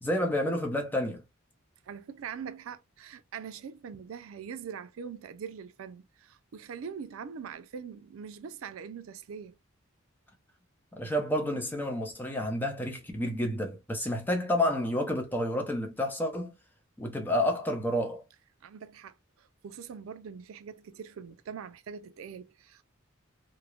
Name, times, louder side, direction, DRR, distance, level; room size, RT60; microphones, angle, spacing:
voice 1, 0.0-1.2 10.9-16.5 17.0-18.2, left 1 dB, 10° left, 0.5 m, -30 dB
voice 2, 1.9-9.6 18.6-22.8, right 7 dB, 80° right, 0.4 m, -43 dB
3.0 x 2.0 x 2.3 m
head